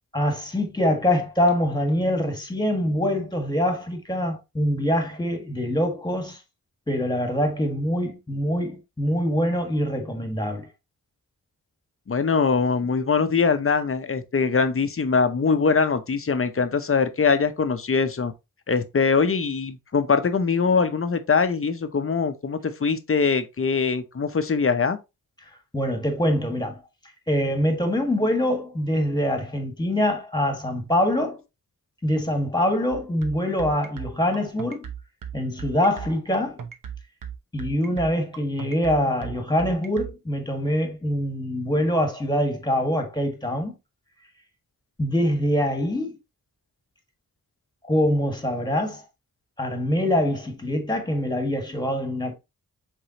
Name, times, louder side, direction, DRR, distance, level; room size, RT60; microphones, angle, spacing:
voice 1, 0.1-6.4 6.9-10.7 25.7-26.8 27.3-31.4 32.0-34.9 35.3-36.6 37.5-43.8 45.0-46.2 47.9-49.0 49.6-52.3, equal, 10° left, 1.7 m, -24 dB
voice 2, 12.1-18.3 18.7-25.0, left 5 dB, 40° left, 0.7 m, -22 dB
sound 1, 32.9-40.1, right 8 dB, 60° right, 0.9 m, -36 dB
4.9 x 3.7 x 2.9 m
cardioid pair, 50°, 36 cm